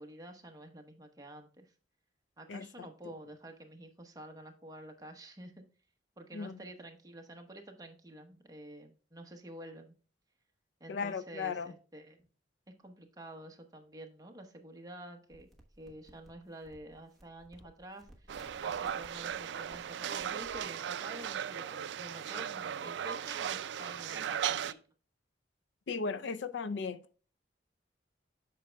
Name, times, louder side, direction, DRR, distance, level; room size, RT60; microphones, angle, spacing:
voice 1, 0.0-1.7 2.4-5.6 6.2-9.9 10.8-12.2 12.7-15.5 15.8-18.4 18.6-24.8, right 1 dB, 20° right, 0.9 m, -49 dB
voice 2, 2.5-2.9 6.3-6.6 10.9-11.7 25.9-27.2, left 5 dB, 70° left, 0.4 m, -37 dB
sound 1, 15.3-20.7, right 1 dB, ahead, 1.1 m, -58 dB
sound 2, 18.3-24.7, right 9 dB, 70° right, 0.3 m, -37 dB
8.1 x 6.2 x 2.2 m
head